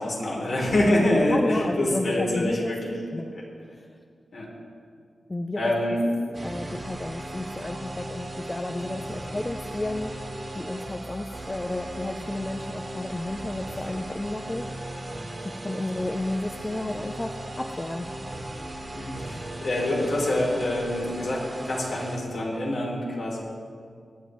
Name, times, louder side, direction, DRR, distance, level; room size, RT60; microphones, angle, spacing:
voice 1, 0.0-2.9 3.3-3.4 4.3-4.5 5.6-6.1 18.9-23.4, left 1 dB, 70° left, -3 dB, 3.2 m, -25 dB
voice 2, 1.3-2.7 3.1-3.3 3.9-4.0 5.3-5.7 6.4-10.1 10.5-14.6 15.6-18.1, left 1 dB, 20° left, 5 dB, 0.5 m, -32 dB
sound 1, 6.3-22.2, right 1 dB, 30° right, 1.5 m, -37 dB
23.0 x 8.4 x 3.1 m, 2.2 s
wide cardioid pair, 130°, 0 cm